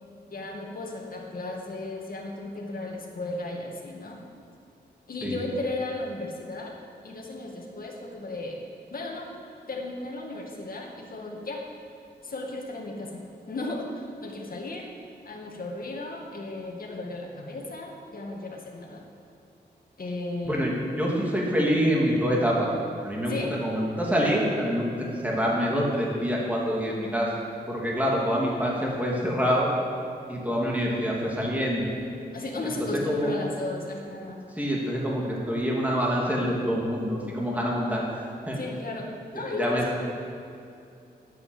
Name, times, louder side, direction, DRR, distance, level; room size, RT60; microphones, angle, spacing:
voice 1, 0.3-4.2 5.1-6.8 7.0-8.6 8.9-9.3 9.7-11.7 12.2-14.9 15.2-19.1 20.0-20.7 21.4-21.6 23.3-23.6 32.3-34.5 38.6-40.0, left 2 dB, 60° left, 0 dB, 2.1 m, -35 dB
voice 2, 20.4-22.7 23.0-27.3 27.7-29.7 30.3-31.8 32.6-32.7 33.0-33.3 34.5-38.6 39.6-39.8, equal, 10° right, -4 dB, 2.8 m, -26 dB
10.5 x 8.5 x 8.6 m, 2.6 s
wide cardioid pair, 115°, 17 cm